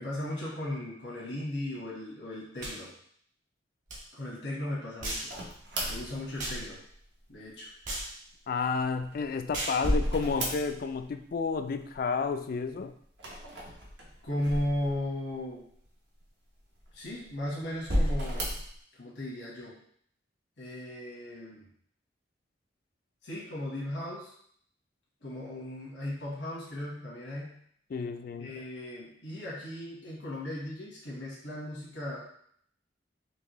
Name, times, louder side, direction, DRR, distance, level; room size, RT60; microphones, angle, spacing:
voice 1, 0.0-2.9 4.1-5.3 5.9-6.8 7.3-7.7 14.2-15.7 16.9-18.6 19.0-19.8 20.6-21.7 23.2-24.3 25.2-27.6 28.4-32.3, left 1 dB, 90° left, -5 dB, 1.2 m, -36 dB
sound 1, 2.6-2.8 3.9-4.0 5.0-5.3 6.4-6.6 7.8-8.1 9.5-9.8, right 1 dB, 45° right, 1.2 m, -35 dB
sound 2, 5.3-6.9 8.8-11.0 11.3-12.0 13.1-15.3 15.8-15.9 16.8-17.3 17.8-18.7, equal, 70° right, 1.0 m, -32 dB
voice 2, 8.5-12.9 27.9-28.5, left 5 dB, 55° left, 8 dB, 0.3 m, -31 dB
4.5 x 2.9 x 3.0 m, 0.63 s
head